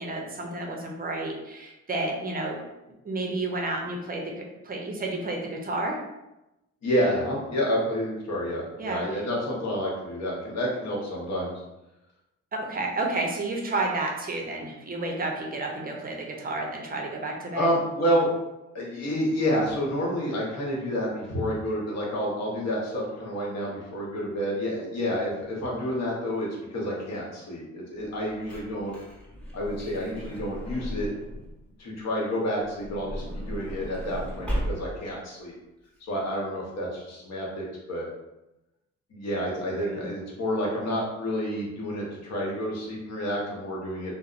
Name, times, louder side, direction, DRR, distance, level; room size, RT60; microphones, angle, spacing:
voice 1, 0.0-2.6 3.0-6.0 8.8-9.0 12.5-17.7 39.8-40.1, right 2 dB, 30° right, 0 dB, 0.5 m, -31 dB
voice 2, 6.8-11.6 17.5-18.3 18.7-28.9 29.5-31.1 31.8-35.5 36.0-38.0 39.1-44.1, equal, 60° left, -3 dB, 1.0 m, -29 dB
Truck / Door, 28.1-31.6 32.6-35.2 35.9-36.0 36.1-36.3, equal, 5° left, 0.9 m, -35 dB
2.7 x 2.0 x 2.4 m, 0.95 s
cardioid pair, 90°, 30 cm